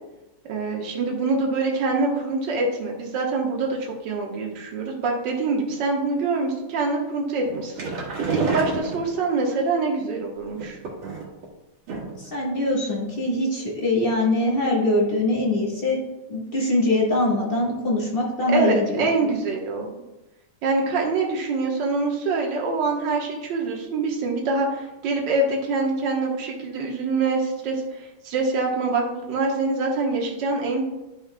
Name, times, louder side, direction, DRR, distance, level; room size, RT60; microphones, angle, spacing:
voice 1, 0.5-7.9 8.3-10.8 18.5-20.0 20.6-30.8, right 3 dB, 65° right, 0 dB, 1.7 m, -25 dB
sound 1, 7.4-9.5 10.5-11.4 11.9-12.3 12.6-12.7 13.0-13.1, right 4 dB, 85° right, 2.4 m, -29 dB
voice 2, 12.2-16.0 16.3-19.3, left 1 dB, 30° left, -4 dB, 1.3 m, -23 dB
10.5 x 5.4 x 2.2 m, 0.99 s
omnidirectional pair, 2.2 m